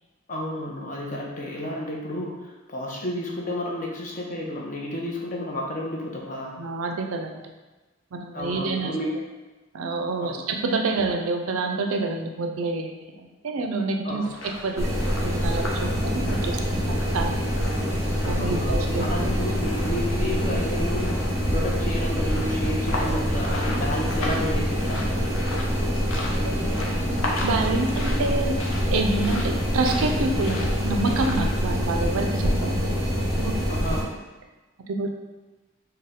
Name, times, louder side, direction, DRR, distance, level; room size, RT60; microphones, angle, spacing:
voice 1, 0.3-6.6 8.3-9.1 10.2-10.5 14.0-14.3 18.4-25.3 33.7-34.0, left 1 dB, 40° left, -2 dB, 0.6 m, -31 dB
voice 2, 6.6-7.3 8.1-8.9 9.7-14.2 14.6-17.5 18.3-19.1 26.4-26.6 27.4-28.6 28.9-33.0 33.3-33.6 34.9-35.1, right 3 dB, 90° right, 3 dB, 0.4 m, -28 dB
sound 1, 14.2-31.6, left 2 dB, 75° left, 0.7 m, -37 dB
sound 2, 14.8-34.0, equal, 15° right, 0.6 m, -25 dB
4.2 x 2.2 x 3.6 m, 1.2 s
head